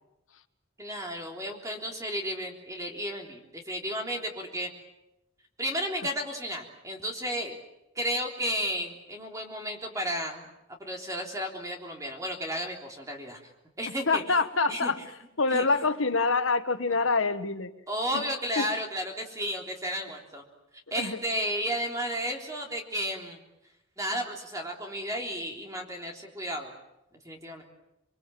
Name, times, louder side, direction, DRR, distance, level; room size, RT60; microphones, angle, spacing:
voice 1, 0.8-4.7 5.6-7.6 8.0-10.5 10.8-13.4 13.8-14.2 14.7-14.9 15.5-15.9 17.9-20.4 20.9-23.4 24.0-26.7 27.3-27.6, equal, 15° right, 1 dB, 3.5 m, -33 dB
voice 2, 14.1-15.0 15.4-17.7 18.1-18.2 18.6-18.7 21.0-21.2, left 3 dB, 75° left, 9 dB, 1.4 m, -25 dB
28.5 x 22.5 x 7.6 m, 0.88 s
head